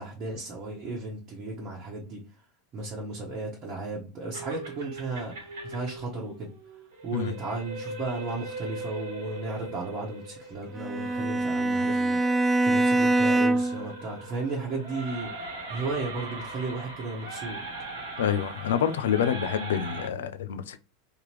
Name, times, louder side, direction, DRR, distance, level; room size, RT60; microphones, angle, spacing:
voice 1, 0.0-2.2 2.7-5.3 5.6-6.5 7.0-17.6, right 3 dB, 35° right, 1.1 m, -34 dB
sound 1, 4.3-20.1, right 2 dB, 65° right, 1.1 m, -40 dB
Bowed string instrument, 10.8-13.9, right 2 dB, 15° right, 0.3 m, -24 dB
voice 2, 18.2-20.8, left 9 dB, 65° left, 0.3 m, -27 dB
3.4 x 2.9 x 3.1 m
figure-of-eight pair, 80°, 0 cm